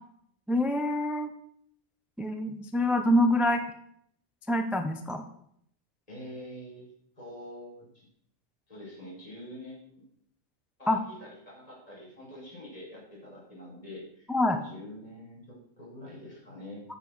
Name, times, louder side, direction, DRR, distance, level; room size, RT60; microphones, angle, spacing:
voice 1, 0.5-1.3 2.2-3.7 4.5-5.2 10.9-11.0 14.3-14.6, left 1 dB, ahead, 6 dB, 0.5 m, -26 dB
voice 2, 6.1-8.1 8.7-10.0 10.8-16.8, left 1 dB, 25° left, -6 dB, 5.3 m, -46 dB
8.7 x 6.4 x 6.4 m, 0.71 s
omnidirectional pair, 1.5 m